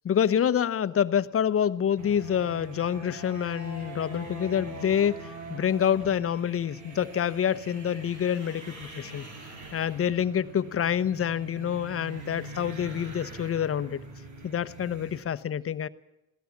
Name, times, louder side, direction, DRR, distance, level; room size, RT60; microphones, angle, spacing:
voice 1, 0.0-9.3 9.7-14.0 14.4-15.9, left 8 dB, 50° left, 14 dB, 1.0 m, -27 dB
sound 1, 2.0-15.2, right 2 dB, 75° right, 5.7 m, -43 dB
20.5 x 17.5 x 7.2 m, 0.89 s
cardioid pair, 90°, 30 cm